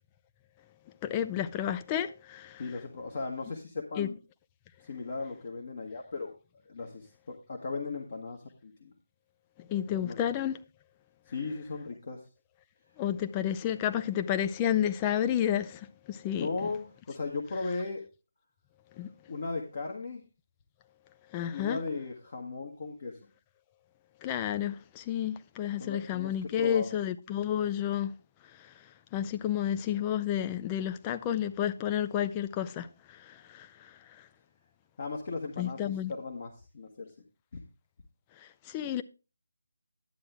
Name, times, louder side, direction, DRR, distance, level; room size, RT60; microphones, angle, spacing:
voice 1, 1.0-2.6 4.0-4.1 9.7-10.6 13.0-16.5 19.0-19.1 21.3-21.8 24.2-28.1 28.6-28.7 29.1-33.7 35.6-36.1 38.7-39.0, left 10 dB, 15° left, 0.5 m, -31 dB
voice 2, 2.6-4.2 4.8-6.3 6.7-8.9 10.0-10.2 11.3-12.2 16.4-16.8 17.1-18.0 19.3-20.2 21.5-23.2 25.8-26.9 35.0-37.1, left 4 dB, 40° left, 1.5 m, -37 dB
11.5 x 8.8 x 3.5 m
figure-of-eight pair, 155°, 0 cm